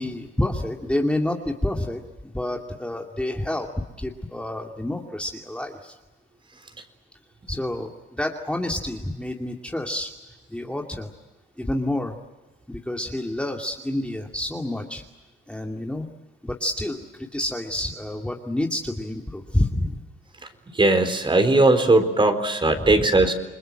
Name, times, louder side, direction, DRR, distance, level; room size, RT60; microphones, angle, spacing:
voice 1, 0.0-6.0 7.5-10.1 10.5-11.1 11.6-12.2 12.7-15.0 15.5-16.1 16.4-20.0 22.8-23.0, left 1 dB, 5° left, 1 dB, 2.4 m, -28 dB
voice 2, 20.7-23.3, right 2 dB, 25° right, 8 dB, 4.1 m, -18 dB
29.0 x 21.5 x 7.8 m, 1.1 s
cardioid pair, 90°, 20 cm